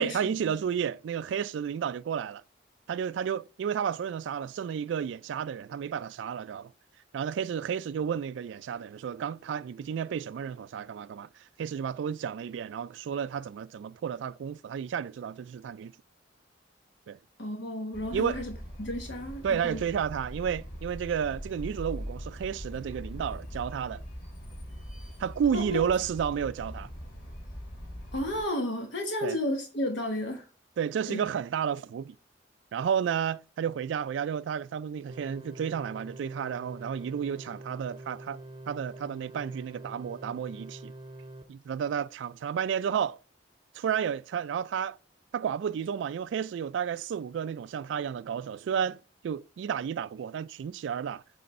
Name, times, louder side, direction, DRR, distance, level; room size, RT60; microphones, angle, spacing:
voice 1, 0.0-2.4 2.9-6.7 7.1-11.3 11.6-15.9 17.1-17.2 18.1-18.4 19.4-24.0 25.2-26.9 29.2-29.4 30.8-32.1 32.7-38.4 38.7-40.9 41.5-43.2 43.7-45.0 45.3-49.0 49.2-51.2, right 8 dB, 75° right, 0.3 m, -32 dB
voice 2, 17.4-18.5 18.8-19.8 25.5-25.8 28.1-30.4 31.1-31.2, left 1 dB, 75° left, 1.1 m, -32 dB
sound 1, 17.9-28.4, equal, 50° left, 3.4 m, -41 dB
sound 2, 35.1-41.4, right 2 dB, 25° right, 0.6 m, -45 dB
7.8 x 3.3 x 4.1 m
head